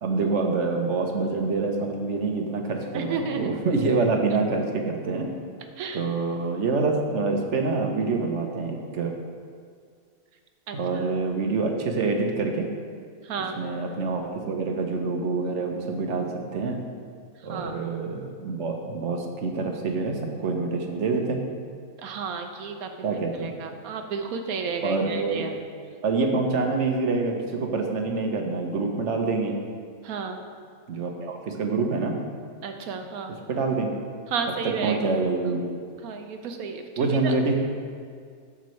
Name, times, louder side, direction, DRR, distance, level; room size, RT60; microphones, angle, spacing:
voice 1, 0.0-5.3 5.9-9.1 10.7-12.7 13.6-16.8 17.4-21.4 23.0-23.5 24.8-25.4 26.0-29.6 30.9-32.2 33.5-33.9 34.6-35.6 37.0-37.5, right 3 dB, 55° right, 3 dB, 1.2 m, -26 dB
voice 2, 2.9-3.6 5.8-6.0 10.7-11.0 13.2-13.6 17.5-17.8 22.0-22.9 23.4-25.5 30.0-30.4 32.6-33.4 34.3-35.0 36.0-37.3, right 5 dB, 75° right, 5 dB, 1.3 m, -32 dB
10.5 x 7.3 x 3.2 m, 2.1 s
omnidirectional pair, 1.6 m